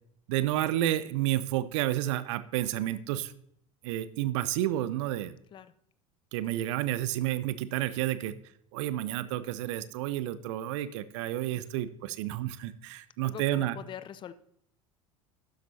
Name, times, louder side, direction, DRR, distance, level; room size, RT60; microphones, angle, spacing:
voice 1, 0.3-3.3 3.8-5.3 6.3-8.3 8.7-13.8, right 13 dB, 60° right, 15 dB, 0.6 m, -30 dB
voice 2, 13.2-14.3, left 9 dB, 30° left, 15 dB, 0.6 m, -43 dB
12.0 x 10.0 x 2.7 m, 0.70 s
figure-of-eight pair, 75°, 17 cm